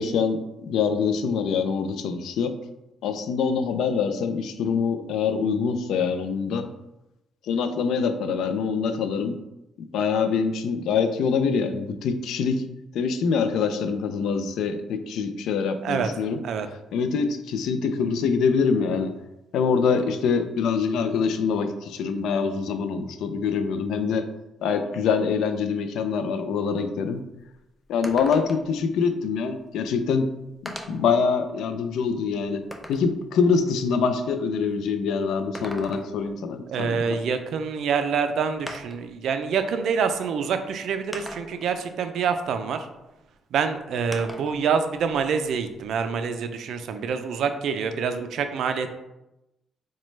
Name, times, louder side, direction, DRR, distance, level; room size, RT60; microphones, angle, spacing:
voice 1, 0.0-2.5 3.0-6.6 7.4-9.4 9.9-12.6 12.9-16.4 16.9-19.1 19.5-24.3 24.6-27.2 27.9-30.3 30.6-32.6 32.9-37.0, left 5 dB, 80° left, 8 dB, 0.3 m, -25 dB
sound 1, 27.1-27.2 27.5-27.6 28.0-28.8 29.8-29.9 30.7-31.1 31.7-33.1 35.3-36.3 37.8-37.9 38.7-39.1 40.1-40.2 41.1-41.7 44.1-44.6 45.0-46.1, equal, 5° left, 0.4 m, -39 dB
voice 2, 36.7-42.9 43.5-48.9, right 6 dB, 70° right, 8 dB, 0.3 m, -26 dB
4.0 x 2.2 x 3.1 m, 0.93 s
cardioid pair, 90°, 0 cm